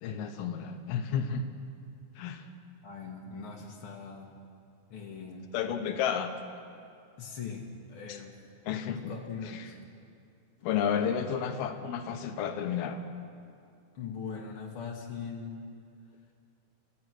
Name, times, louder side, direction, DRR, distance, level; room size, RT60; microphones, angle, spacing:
voice 1, 0.0-1.4 2.2-2.5 5.5-6.3 8.1-8.2 8.7-9.0 10.6-13.0, left 7 dB, 90° left, 7 dB, 3.1 m, -31 dB
voice 2, 2.8-4.4 4.9-5.5 7.2-8.4 8.9-9.8 13.9-15.6, left 5 dB, 50° left, -2 dB, 1.7 m, -41 dB
29.0 x 15.0 x 6.2 m, 2.4 s
omnidirectional pair, 4.3 m